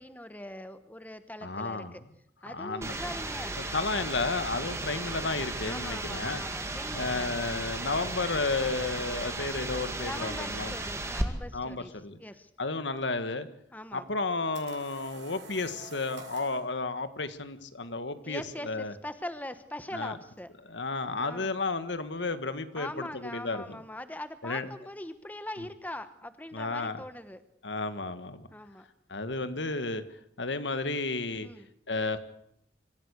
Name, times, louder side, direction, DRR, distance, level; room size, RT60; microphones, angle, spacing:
voice 1, 0.0-2.0 2.4-3.7 5.6-7.3 10.0-11.9 12.2-12.5 13.7-14.1 18.2-20.5 21.2-21.5 22.8-27.4 28.5-28.8 31.4-31.7, left 1 dB, 10° left, 11 dB, 1.1 m, -42 dB
voice 2, 1.4-2.0 2.5-3.0 3.7-6.4 6.9-10.7 11.5-12.2 12.6-13.5 13.9-18.9 19.9-20.2 20.7-23.8 24.4-24.7 26.5-27.0 27.6-28.5 29.1-30.0 30.4-31.5 31.9-32.2, left 3 dB, 80° left, 11 dB, 1.7 m, -32 dB
sound 1, 2.8-11.2, right 2 dB, 15° right, 2.1 m, -35 dB
sound 2, 14.1-16.6, right 4 dB, 85° right, 5.8 m, -48 dB
25.5 x 15.0 x 8.2 m, 0.72 s
head